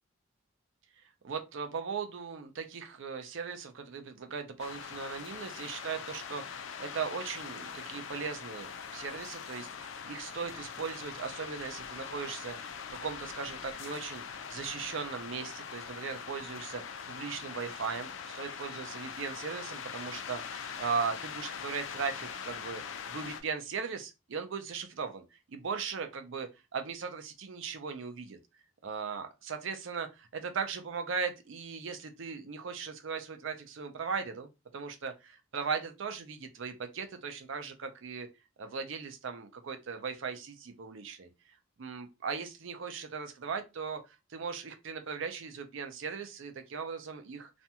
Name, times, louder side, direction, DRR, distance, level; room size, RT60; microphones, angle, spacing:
voice 1, 1.2-22.8 23.1-28.4 28.8-34.5 34.7-38.3 38.6-41.3 41.8-44.0 44.3-47.5, right 5 dB, 70° right, 0.5 m, -38 dB
sound 1, 4.6-23.4, left 7 dB, 70° left, 0.4 m, -42 dB
2.5 x 2.2 x 2.8 m
head